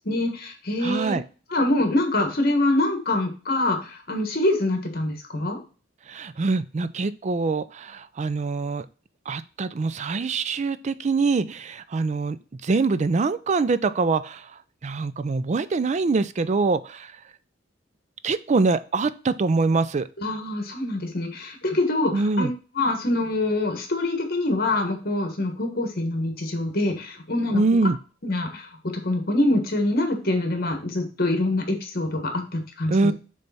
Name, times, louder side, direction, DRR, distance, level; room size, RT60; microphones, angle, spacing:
voice 1, 0.1-1.2 1.5-5.6 20.2-22.5 22.7-27.6 28.2-33.1, left 2 dB, 55° left, 5 dB, 1.5 m, -25 dB
voice 2, 0.8-1.2 6.1-8.9 9.3-14.5 14.8-17.1 18.2-20.1 22.1-22.5 27.5-28.0 32.9-33.1, right 3 dB, 40° right, 15 dB, 0.4 m, -24 dB
6.8 x 3.3 x 4.1 m, 0.36 s
head